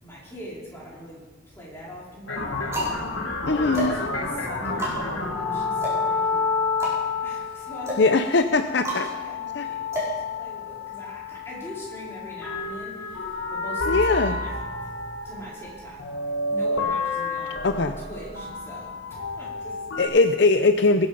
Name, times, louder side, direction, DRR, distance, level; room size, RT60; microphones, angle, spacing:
voice 1, 0.0-1.2 1.5-3.1 3.4-6.5 7.2-14.5 14.8-14.9 15.2-16.0 16.5-19.9, equal, 15° left, -6 dB, 4.8 m, -42 dB
sound 1, 0.8-1.5 2.2-10.9, right 1 dB, 15° right, 4.8 m, -34 dB
sound 2, 2.3-20.0, left 3 dB, 85° left, 2.0 m, -30 dB
voice 2, 3.5-3.9 8.0-9.1 9.5-9.7 13.9-14.4 17.6-18.0 20.0-21.1, left 3 dB, 60° left, 8 dB, 0.6 m, -20 dB
20.0 x 9.5 x 5.3 m, 1.3 s
head